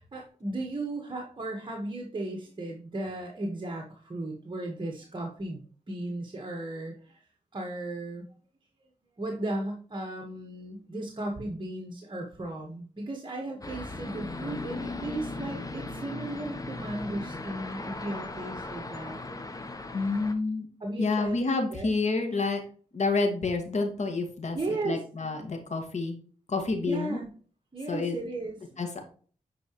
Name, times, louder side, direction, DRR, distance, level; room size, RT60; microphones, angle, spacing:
voice 1, 0.0-7.3 7.5-8.3 9.2-19.2 20.8-21.3 21.7-21.9 24.5-25.4 26.8-27.3 27.7-28.7, right 2 dB, 35° right, 1 dB, 1.6 m, -36 dB
sound 1, 13.6-20.3, left 2 dB, 25° left, 1.2 m, -38 dB
voice 2, 19.9-20.7 21.0-22.6 22.9-26.2 26.5-27.2 27.9-28.2 28.8-29.0, left 3 dB, 60° left, 4 dB, 2.1 m, -29 dB
9.2 x 4.9 x 3.2 m, 0.42 s
cardioid pair, 60°, 13 cm